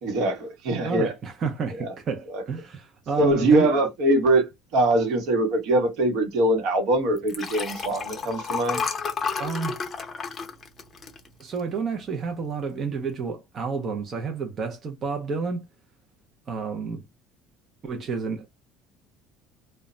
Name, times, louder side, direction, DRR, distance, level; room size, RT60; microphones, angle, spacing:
voice 1, 0.0-1.1 1.8-1.9 2.3-2.4 3.2-8.8, right 1 dB, 65° right, 0.9 m, -22 dB
voice 2, 0.8-3.7 9.4-9.8 11.4-15.6 16.5-17.0 17.8-18.5, right 5 dB, 35° right, 0.5 m, -30 dB
Liquid, 7.2-11.8 12.3-12.6 12.8-12.9, left 5 dB, 25° left, 0.6 m, -31 dB
2.1 x 2.0 x 3.6 m
cardioid pair, 150°, 0 cm